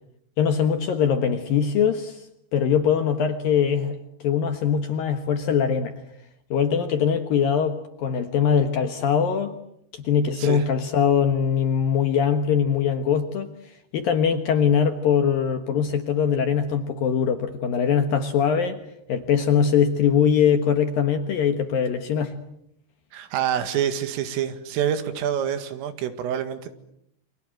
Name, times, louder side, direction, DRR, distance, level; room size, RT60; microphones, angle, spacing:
voice 1, 0.4-2.3 2.5-5.9 6.5-9.5 9.9-13.5 13.9-18.8 19.1-22.3, left 7 dB, 65° left, 7 dB, 2.4 m, -22 dB
voice 2, 23.1-26.7, right 9 dB, 85° right, 10 dB, 4.6 m, -26 dB
28.5 x 26.0 x 7.8 m, 0.75 s
omnidirectional pair, 5.7 m